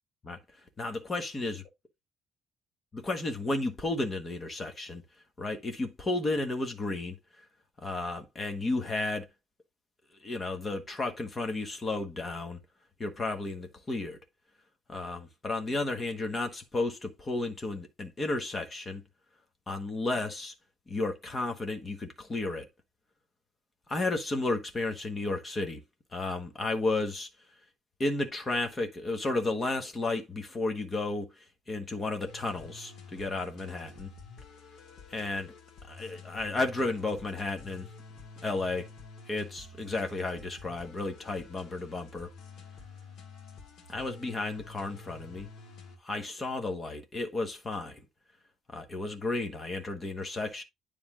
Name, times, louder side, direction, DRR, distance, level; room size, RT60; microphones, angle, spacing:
voice 1, 0.8-1.6 2.9-5.0 5.4-7.4 7.8-9.3 10.2-12.6 13.0-14.2 14.9-19.0 19.7-20.5 20.9-22.7 23.9-25.8 26.1-27.3 28.0-34.1 35.1-35.5 35.9-37.9 38.4-38.9 39.3-42.3 43.9-45.5 46.0-48.0 48.7-50.6, left 2 dB, 20° left, 1.2 m, -33 dB
sound 1, 32.2-46.0, left 3 dB, 60° left, 1.8 m, -49 dB
9.6 x 3.4 x 3.6 m
cardioid pair, 170°, 0 cm